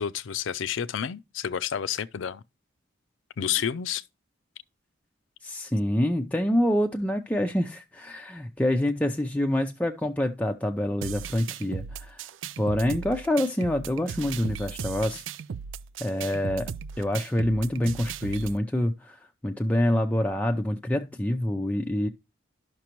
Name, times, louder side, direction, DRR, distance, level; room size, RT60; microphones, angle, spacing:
voice 1, 0.0-2.4 3.4-4.0, left 8 dB, 85° left, 0.5 m, -30 dB
voice 2, 5.4-12.3 12.6-15.2 16.0-16.7 17.0-22.1, left 1 dB, 5° left, 0.4 m, -26 dB
sound 1, 11.0-18.6, right 7 dB, 90° right, 0.4 m, -37 dB
11.5 x 5.9 x 3.0 m
head